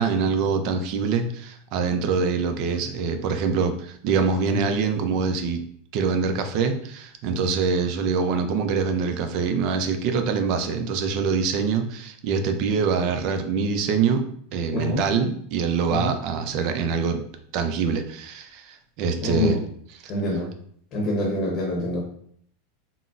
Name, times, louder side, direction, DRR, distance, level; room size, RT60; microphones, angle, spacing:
voice 1, 0.0-5.6 5.9-14.3 14.5-17.2 17.5-19.6, right 5 dB, 55° right, 7 dB, 0.4 m, -24 dB
voice 2, 14.7-15.0 15.9-16.1 19.2-19.6 20.1-20.5 20.9-22.0, left 2 dB, 40° left, 0 dB, 0.8 m, -25 dB
3.7 x 2.0 x 2.5 m, 0.62 s
supercardioid pair, 120°, 0 cm